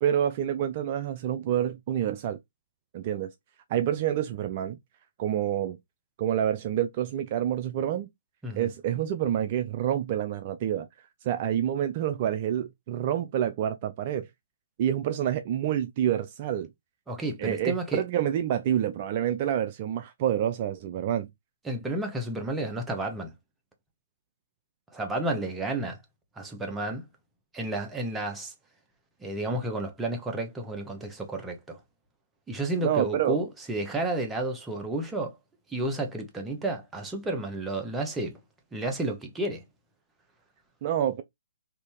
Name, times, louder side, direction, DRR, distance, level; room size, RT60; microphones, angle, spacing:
voice 1, 0.0-2.4 2.9-3.3 3.7-4.8 5.2-5.8 6.2-8.1 8.6-10.9 11.2-14.3 14.8-16.7 17.4-21.3 32.8-33.4 40.8-41.2, right 10 dB, 40° right, 0.3 m, -28 dB
voice 2, 17.1-18.0 21.6-23.3 24.9-26.0 26.4-27.0 27.5-28.5 29.2-31.8 32.5-35.4 35.7-38.4 38.7-39.6, right 2 dB, 10° right, 0.8 m, -31 dB
3.4 x 2.6 x 3.0 m
figure-of-eight pair, 130°, 0 cm